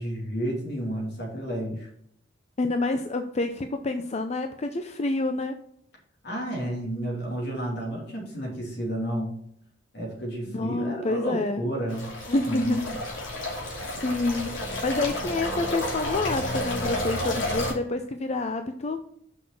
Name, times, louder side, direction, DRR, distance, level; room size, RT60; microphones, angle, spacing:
voice 1, 0.0-1.9 6.2-9.3 9.9-12.1 12.4-13.0, right 1 dB, 60° left, -1 dB, 3.0 m, -31 dB
voice 2, 2.6-5.6 10.5-11.6 12.3-12.8 13.3-13.5 13.9-19.0, left 2 dB, 35° left, 7 dB, 0.5 m, -28 dB
sound 1, 11.9-17.7, left 1 dB, 85° left, 2.8 m, -31 dB
6.2 x 5.7 x 5.9 m, 0.68 s
head